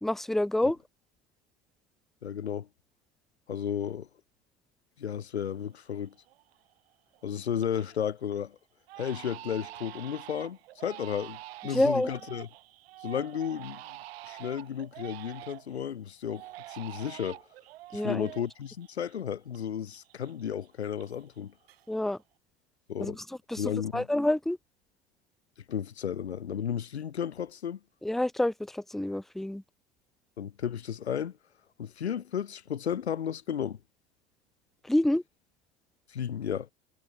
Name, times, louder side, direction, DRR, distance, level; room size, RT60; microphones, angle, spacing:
voice 1, 0.0-0.8 11.7-12.1 17.9-18.3 21.9-22.2 23.0-23.2 23.5-23.6 23.9-24.6 28.0-29.6 34.9-35.2, left 1 dB, ahead, 0.6 m, -27 dB
voice 2, 2.2-2.7 3.5-4.1 5.0-6.1 7.2-8.6 9.0-12.5 13.0-13.8 14.2-17.4 17.9-21.5 22.9-23.2 23.6-24.1 25.7-27.8 30.4-31.4 31.8-33.8 36.1-36.7, left 8 dB, 90° left, 0.7 m, -33 dB
Crying sobbing, 5.7-5.8 6.3-6.7 7.1-8.0 8.3-8.4 8.9-15.8 16.3-19.6 19.9-21.4 21.7-22.2, right 17 dB, 70° right, 1.0 m, -46 dB
hypercardioid pair, 75°, 32 cm